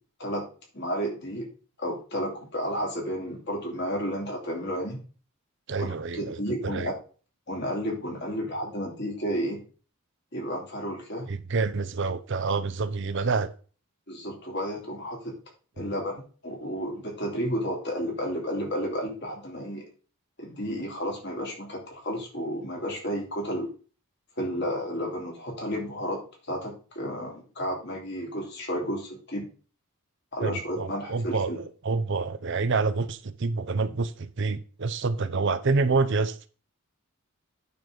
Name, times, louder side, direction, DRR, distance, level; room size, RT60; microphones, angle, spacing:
voice 1, 0.7-1.5 1.8-5.0 5.8-6.9 7.5-9.6 10.3-11.3 14.1-15.4 15.8-19.8 20.4-23.7 24.4-26.2 26.5-29.5 30.3-31.6, equal, 50° left, 2.9 m, -32 dB
voice 2, 5.7-6.9 11.3-13.5 15.8-15.9 30.4-36.5, right 4 dB, 55° right, 0.6 m, -28 dB
9.2 x 3.9 x 6.1 m
head